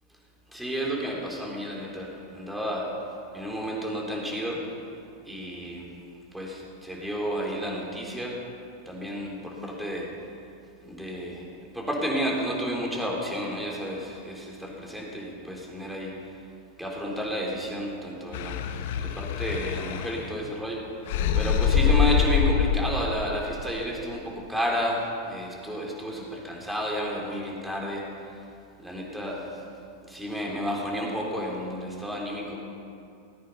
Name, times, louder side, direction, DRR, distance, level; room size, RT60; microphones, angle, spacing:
voice 1, 0.5-2.9 3.3-4.6 5.3-5.9 6.3-8.4 8.9-10.1 10.8-11.5 11.7-16.1 16.8-18.7 18.9-20.8 21.3-28.1 28.8-29.4 30.1-32.6, equal, 5° right, -2 dB, 3.6 m, -31 dB
sound 1, 18.3-20.5 21.1-23.1, left 7 dB, 65° left, 0.9 m, -24 dB
18.5 x 9.4 x 5.7 m, 2.6 s
hypercardioid pair, 100°, 0 cm